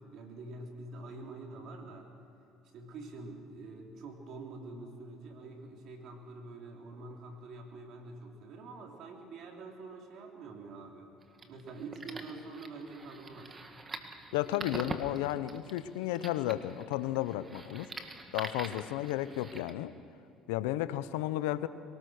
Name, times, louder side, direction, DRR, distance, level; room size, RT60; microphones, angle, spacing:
voice 1, 0.0-2.1 2.7-11.1 11.5-13.6, right 3 dB, 60° right, 2 dB, 3.7 m, -46 dB
sound 1, 11.2-19.7, right 3 dB, 30° right, 2.0 m, -45 dB
voice 2, 14.3-17.9 18.3-19.9 20.5-21.7, left 14 dB, 85° left, 14 dB, 0.7 m, -33 dB
23.0 x 19.0 x 6.6 m, 2.7 s
supercardioid pair, 85°, 0 cm